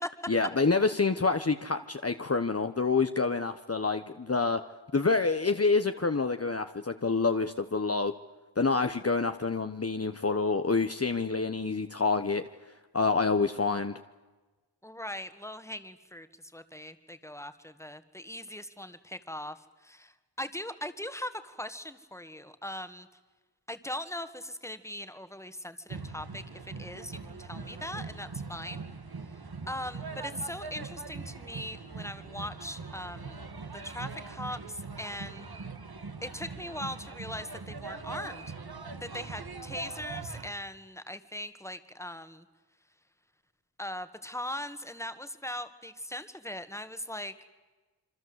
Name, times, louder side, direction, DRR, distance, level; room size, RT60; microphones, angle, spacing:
voice 1, 0.3-4.6 4.9-8.1 8.6-12.4 12.9-13.9, left 4 dB, 35° left, 8 dB, 1.1 m, -27 dB
voice 2, 14.8-16.3 16.5-19.6 19.8-20.1 20.4-23.1 23.7-26.4 26.8-28.8 29.7-33.4 33.8-35.5 36.2-38.4 39.0-42.5 43.8-47.3, left 1 dB, 5° left, 11 dB, 2.0 m, -40 dB
sound 1, 25.9-40.5, right 4 dB, 65° right, 2.2 m, -42 dB
27.0 x 25.0 x 8.1 m, 1.2 s
wide cardioid pair, 75°, 41 cm